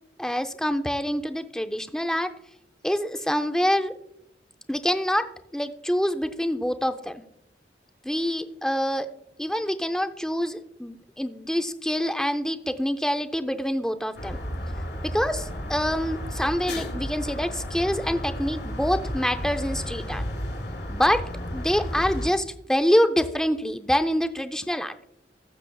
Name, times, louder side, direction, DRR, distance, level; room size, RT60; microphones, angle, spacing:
voice 1, 0.2-2.3 2.8-3.9 4.7-7.2 8.0-9.1 9.4-14.4 15.0-20.2 20.9-24.9, equal, 5° left, 8 dB, 0.5 m, -26 dB
sound 1, 14.1-22.3, equal, 70° left, 3.4 m, -33 dB
20.0 x 7.0 x 2.3 m, 0.78 s
head